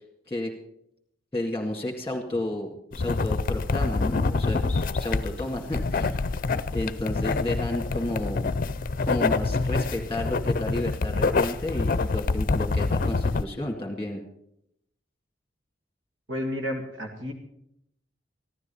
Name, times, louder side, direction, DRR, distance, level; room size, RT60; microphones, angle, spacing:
voice 1, 1.3-6.2 6.7-8.5 9.0-14.2, left 1 dB, 15° left, 1 dB, 2.0 m, -31 dB
sound 1, 2.9-13.4, left 3 dB, 45° left, 0.6 m, -26 dB
voice 2, 16.3-17.3, left 1 dB, 85° right, 2 dB, 2.1 m, -31 dB
15.0 x 13.0 x 5.5 m, 0.76 s
head